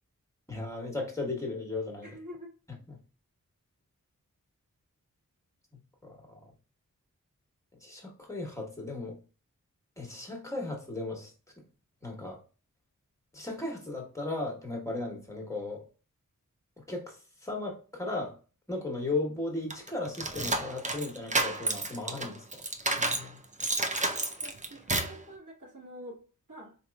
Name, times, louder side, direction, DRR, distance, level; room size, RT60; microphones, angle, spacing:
voice 1, 0.5-2.1 2.9-3.0 6.0-6.4 7.8-9.2 10.0-11.3 12.0-12.4 13.3-15.8 16.9-18.4 18.7-22.6 23.0-23.4, left 2 dB, 10° left, 1 dB, 1.1 m, -36 dB
voice 2, 2.0-2.5 24.4-26.8, equal, 70° right, -4 dB, 1.6 m, -47 dB
sound 1, 19.7-23.3 23.6-25.2, right 2 dB, 25° right, 0.4 m, -30 dB
4.0 x 2.9 x 2.3 m, 0.35 s
wide cardioid pair, 75°, 32 cm